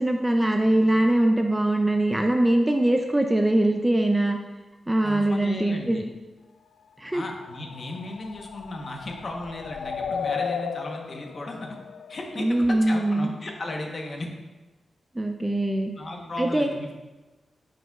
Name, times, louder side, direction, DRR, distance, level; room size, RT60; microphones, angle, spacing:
voice 1, 0.0-4.4 4.9-6.1 7.0-7.2 12.4-13.3 15.2-15.9 16.4-16.7, right 1 dB, 10° right, 4 dB, 0.3 m, -22 dB
voice 2, 5.0-6.0 7.1-11.8 12.1-14.3 15.9-17.0, left 2 dB, 40° left, 2 dB, 0.9 m, -35 dB
sound 1, 7.1-12.9, left 6 dB, 80° left, 0.3 m, -35 dB
9.1 x 5.2 x 2.3 m, 1.2 s
wide cardioid pair, 155°, 0 cm